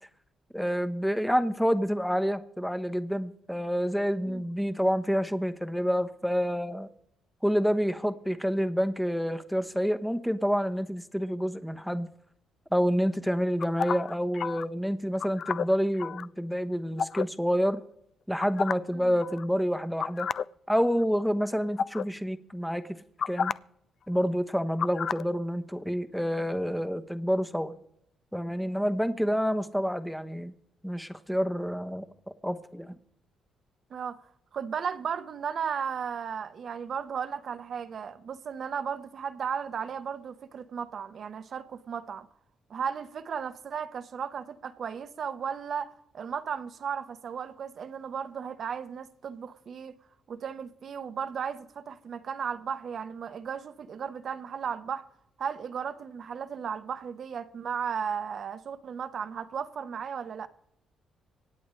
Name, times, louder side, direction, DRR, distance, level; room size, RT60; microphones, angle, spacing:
voice 1, 0.5-6.9 7.4-12.1 12.7-17.8 18.3-20.3 20.7-22.9 23.3-23.5 24.1-27.7 28.3-30.5 30.8-32.0 32.4-33.0, equal, ahead, 1.0 m, -28 dB
sound 1, 13.6-14.7 15.2-16.3 17.0-17.3 18.4-18.9 19.2-19.4 20.0-20.4 20.8-21.0 21.8-22.0 23.2-23.5 24.8-25.2, left 7 dB, 55° left, 0.4 m, -31 dB
voice 2, 34.5-42.3 42.7-49.9 50.3-55.0 55.4-60.5, right 7 dB, 55° right, 1.0 m, -35 dB
25.5 x 8.7 x 3.2 m
cardioid pair, 90°, 0 cm